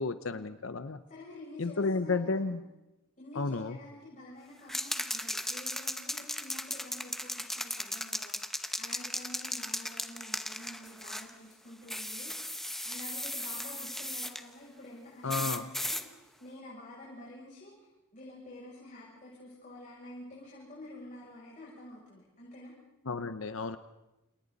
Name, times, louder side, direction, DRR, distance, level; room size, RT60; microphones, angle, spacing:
voice 1, 0.0-1.0 1.6-2.6 3.3-3.8 15.2-15.7 23.0-23.8, left 3 dB, 70° left, 11 dB, 0.8 m, -32 dB
voice 2, 1.1-2.5 3.2-12.5 12.8-17.7 18.1-22.7, left 1 dB, 40° left, -6 dB, 7.4 m, -49 dB
sound 1, 4.7-11.3 11.9-14.4 15.3-16.0, left 1 dB, ahead, 1.0 m, -36 dB
29.5 x 29.0 x 4.1 m, 0.98 s
head